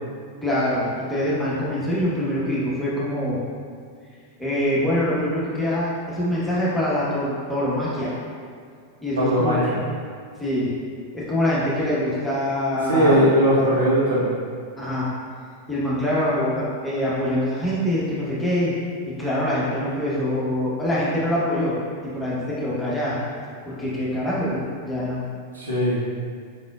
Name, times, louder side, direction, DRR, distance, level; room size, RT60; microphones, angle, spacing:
voice 1, 0.4-3.4 4.4-8.1 9.0-9.6 10.4-10.7 11.1-13.3 13.6-13.7 14.8-15.1 15.7-18.7 19.2-21.8 22.0-23.2 23.7-25.2, left 1 dB, 5° left, -9 dB, 1.2 m, -24 dB
voice 2, 9.2-9.8 12.9-14.3 25.5-26.0, equal, 75° right, -7 dB, 1.1 m, -19 dB
4.5 x 4.1 x 2.4 m, 2.1 s
figure-of-eight pair, 90°, 0 cm